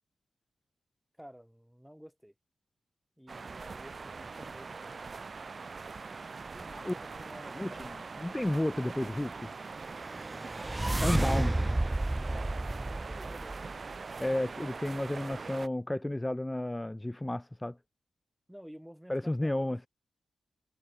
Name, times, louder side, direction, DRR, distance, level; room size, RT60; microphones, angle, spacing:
voice 1, 1.2-2.3 3.2-5.0 6.5-8.1 11.7-13.9 18.5-19.9, equal, 5° right, 6.4 m, -52 dB
sound 1, 3.3-15.7, right 4 dB, 55° right, 4.7 m, -42 dB
voice 2, 7.6-9.5 11.0-11.7 14.2-17.8 19.1-19.9, left 1 dB, 15° left, 0.5 m, -32 dB
sound 2, 9.8-14.0, right 1 dB, 20° right, 2.2 m, -31 dB
supercardioid pair, 45°, 0 cm